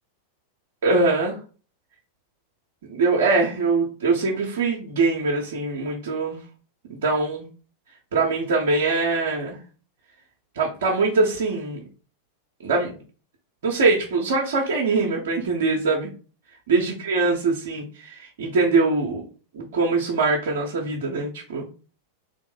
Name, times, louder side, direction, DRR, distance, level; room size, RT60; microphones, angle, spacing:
voice 1, 0.8-1.4 2.8-6.4 6.9-7.5 8.1-9.6 10.6-11.9 12.6-13.0 13.6-16.1 16.7-19.2 19.5-21.6, right 3 dB, 60° right, -2 dB, 0.8 m, -23 dB
3.6 x 3.0 x 3.7 m, 0.37 s
figure-of-eight pair, 90°, 0 cm